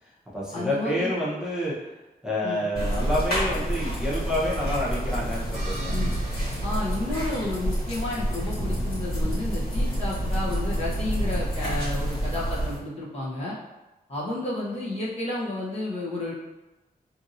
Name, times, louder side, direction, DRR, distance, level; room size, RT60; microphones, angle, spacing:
voice 1, 0.0-1.7 2.2-5.9, left 1 dB, 5° right, -8 dB, 0.9 m, -28 dB
voice 2, 0.5-1.1 2.4-2.6 5.9-6.1 6.6-13.5 14.1-16.3, left 2 dB, 40° left, -6 dB, 0.8 m, -31 dB
sound 1, 2.8-12.8, equal, 70° left, 1.3 m, -28 dB
sound 2, 5.5-7.8, right 2 dB, 45° right, 0.8 m, -43 dB
2.8 x 2.7 x 2.6 m, 1.1 s
wide cardioid pair, 75°, 16 cm